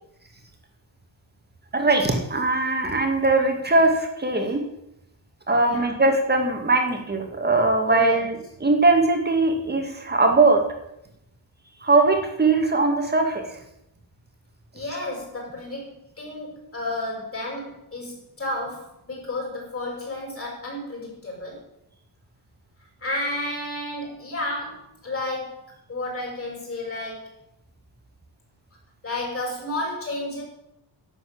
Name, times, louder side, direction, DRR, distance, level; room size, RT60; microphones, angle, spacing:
voice 1, 1.7-4.6 5.5-10.6 11.8-13.6, right 3 dB, 20° right, 3 dB, 2.3 m, -20 dB
voice 2, 5.6-5.9 7.8-8.3 14.7-21.6 23.0-25.6 25.9-27.3 29.0-30.4, left 1 dB, 30° left, -2 dB, 6.1 m, -32 dB
12.0 x 7.7 x 8.7 m, 0.82 s
wide cardioid pair, 165°, 47 cm